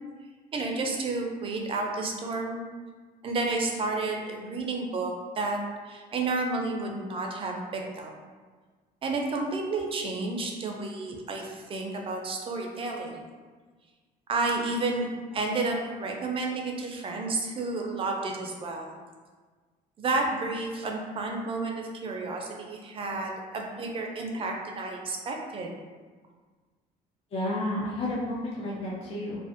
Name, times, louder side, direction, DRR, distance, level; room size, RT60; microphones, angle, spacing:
voice 1, 0.5-2.7 3.2-5.6 5.9-8.1 9.0-13.3 14.3-18.9 20.0-25.7, right 3 dB, 35° right, 1 dB, 0.4 m, -31 dB
voice 2, 27.3-29.4, left 1 dB, 35° left, -5 dB, 0.4 m, -31 dB
2.4 x 2.0 x 2.5 m, 1.4 s
cardioid pair, 110°, 17 cm